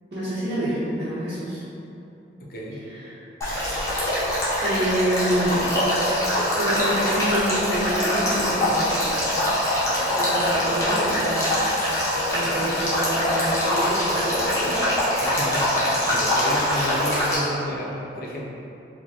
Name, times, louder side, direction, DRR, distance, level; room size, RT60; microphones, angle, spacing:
voice 1, 0.1-1.6 2.9-3.2 4.6-5.7 6.6-9.1 9.8-11.6 12.3-14.8, right 1 dB, 65° right, -14 dB, 0.9 m, -27 dB
voice 2, 2.4-2.8 15.2-18.4, left 1 dB, 55° left, -3 dB, 0.5 m, -32 dB
Male speech man speaking / Stream / Trickle dribble, 3.4-17.4, left 1 dB, 15° left, 0.7 m, -23 dB
4.5 x 2.1 x 2.8 m, 2.8 s
head